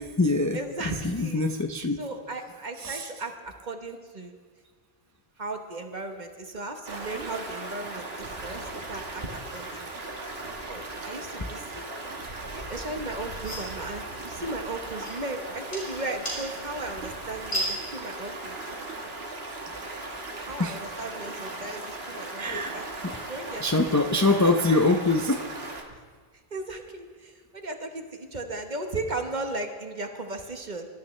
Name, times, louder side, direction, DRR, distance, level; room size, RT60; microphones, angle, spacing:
voice 1, 0.0-0.6 1.0-2.0 2.8-3.0 20.6-20.8 22.4-22.8 23.0-23.1 23.6-25.5, left 2 dB, 20° left, 4 dB, 0.5 m, -24 dB
voice 2, 0.5-1.5 1.9-4.4 5.4-9.9 10.7-11.9 12.7-18.6 20.4-22.9 23.3-24.0 24.4-24.5 25.9-26.0 26.5-30.9, right 2 dB, 45° right, 5 dB, 1.4 m, -36 dB
Stream, 6.9-25.8, right 2 dB, 75° right, 1.8 m, -38 dB
sound 1, 13.3-18.4, right 1 dB, 70° left, 5.9 m, -38 dB
25.0 x 13.0 x 3.3 m, 1.5 s
omnidirectional pair, 1.0 m